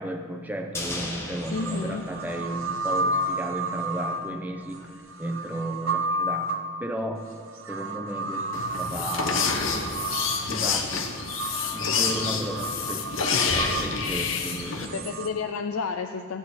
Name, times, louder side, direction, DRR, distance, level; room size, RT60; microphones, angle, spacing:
voice 1, 0.0-4.9 5.2-7.2 7.7-9.6 10.5-11.1 11.7-15.2, right 1 dB, 10° right, 3 dB, 0.7 m, -34 dB
sound 1, 0.7-3.1 3.4-3.5, left 1 dB, 15° left, 1.2 m, -37 dB
sound 2, 0.8-0.9 1.4-15.3, right 2 dB, 65° right, 0.9 m, -32 dB
voice 2, 1.5-2.0 14.8-16.4, left 5 dB, 85° left, 6 dB, 0.5 m, -31 dB
sound 3, 8.5-14.9, left 5 dB, 65° left, 0.9 m, -28 dB
14.5 x 9.6 x 4.2 m, 2.2 s
head